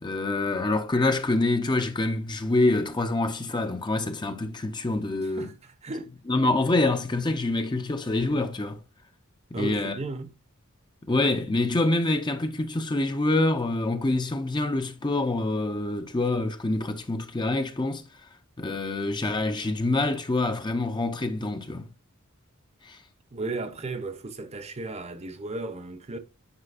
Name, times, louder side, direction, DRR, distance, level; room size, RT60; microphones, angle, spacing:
voice 1, 0.0-5.5 6.3-8.8 9.6-10.0 11.1-18.3 18.6-21.9 22.8-23.0, left 2 dB, 20° left, 0.6 m, -26 dB
voice 2, 5.2-6.1 9.5-10.4 23.3-26.2, right 2 dB, 30° right, 0.8 m, -35 dB
9.7 x 5.1 x 2.5 m
head